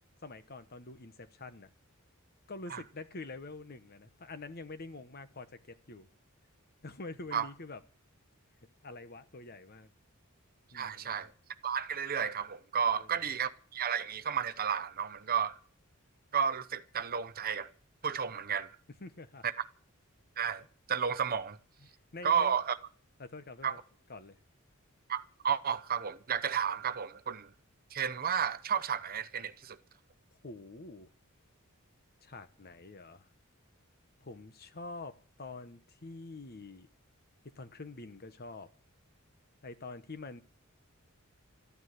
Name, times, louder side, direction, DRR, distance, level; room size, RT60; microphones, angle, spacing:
voice 1, 0.2-1.7 2.5-6.1 6.8-7.8 8.8-9.9 10.7-11.3 12.9-13.1 19.0-19.4 21.8-22.6 23.2-23.8 24.1-24.4 30.4-31.1 32.2-33.3 34.2-36.9 37.4-38.7 39.6-40.4, left 3 dB, 45° left, 1.1 m, -46 dB
voice 2, 10.7-11.3 11.6-15.6 16.3-17.7 18.0-18.8 19.4-19.5 20.4-21.6 22.2-22.8 23.6-23.8 25.1-27.5 27.9-29.8, right 7 dB, 45° right, 0.8 m, -32 dB
13.5 x 9.5 x 9.4 m
head